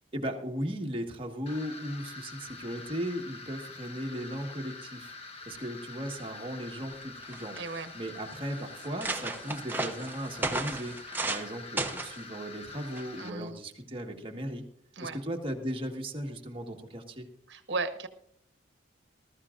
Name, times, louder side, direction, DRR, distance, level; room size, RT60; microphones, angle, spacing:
voice 1, 0.1-7.6 7.9-10.9 11.3-14.6 15.0-17.3, equal, 30° right, 2 dB, 1.5 m, -37 dB
sound 1, 1.5-13.3, left 3 dB, 30° left, 1.2 m, -46 dB
sound 2, 6.9-7.0 7.2-7.8 8.4-8.5 8.8-11.5 11.8-12.2 12.9-13.2, right 2 dB, 10° right, 0.9 m, -34 dB
voice 2, 7.6-7.9 13.2-13.6 15.0-15.2 17.5-18.1, right 3 dB, 65° right, 9 dB, 1.1 m, -35 dB
20.5 x 13.5 x 2.5 m, 0.65 s
head